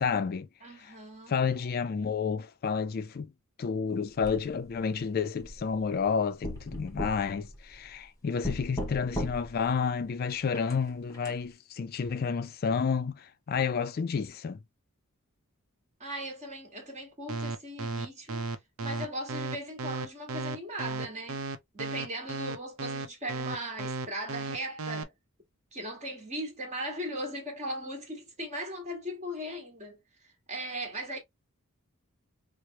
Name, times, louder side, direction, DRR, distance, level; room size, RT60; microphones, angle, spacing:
voice 1, 0.0-0.5 0.8-1.0 1.3-3.3 3.6-14.6, left 6 dB, 45° left, 0.3 m, -30 dB
voice 2, 0.6-1.4 16.0-18.5 18.8-21.4 21.7-25.1 25.7-30.0 30.2-31.2, right 1 dB, 35° right, 1.4 m, -38 dB
sound 1, 4.2-4.9 5.4-6.1 6.4-8.1 8.4-9.7 10.5-11.3, left 1 dB, 15° left, 1.1 m, -38 dB
sound 2, 17.3-25.0, right 3 dB, 65° right, 0.6 m, -34 dB
4.8 x 2.0 x 2.8 m
head